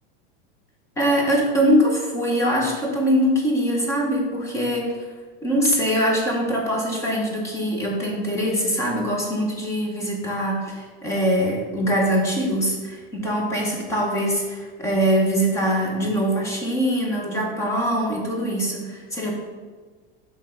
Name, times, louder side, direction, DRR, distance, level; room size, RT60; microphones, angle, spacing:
voice 1, 1.0-5.0 5.4-19.3, equal, 10° left, -1 dB, 0.6 m, -23 dB
5.6 x 3.4 x 5.4 m, 1.4 s
supercardioid pair, 175°, 30 cm